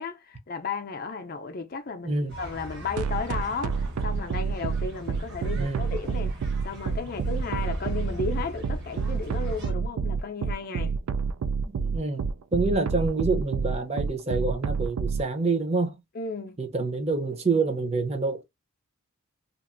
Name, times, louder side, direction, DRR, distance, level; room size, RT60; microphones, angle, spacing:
voice 1, 0.0-6.4 6.6-11.0 16.2-16.6, left 4 dB, 40° left, 0.5 m, -34 dB
voice 2, 2.0-2.4 5.5-5.9 11.6-12.2 12.5-16.0 16.6-18.4, right 3 dB, 30° right, 0.6 m, -27 dB
sound 1, 2.3-9.7, equal, 50° right, 1.1 m, -40 dB
sound 2, 3.0-15.2, right 5 dB, 80° right, 0.3 m, -28 dB
2.9 x 2.5 x 2.5 m
head